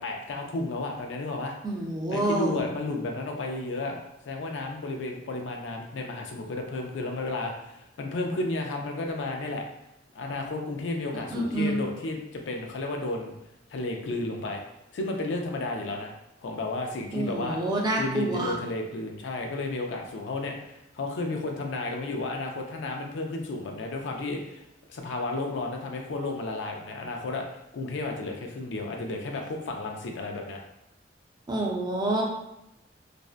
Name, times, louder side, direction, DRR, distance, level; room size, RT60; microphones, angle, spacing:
voice 1, 0.0-1.5 2.1-4.0 4.3-9.6 10.1-13.3 13.7-14.6 14.9-16.1 16.4-17.6 18.0-24.6 24.9-30.6, left 2 dB, 80° left, 2 dB, 0.4 m, -32 dB
voice 2, 1.6-2.6 11.3-11.8 17.1-18.5 31.5-32.2, right 1 dB, 25° right, -2 dB, 0.4 m, -27 dB
2.5 x 2.1 x 2.4 m, 0.89 s
head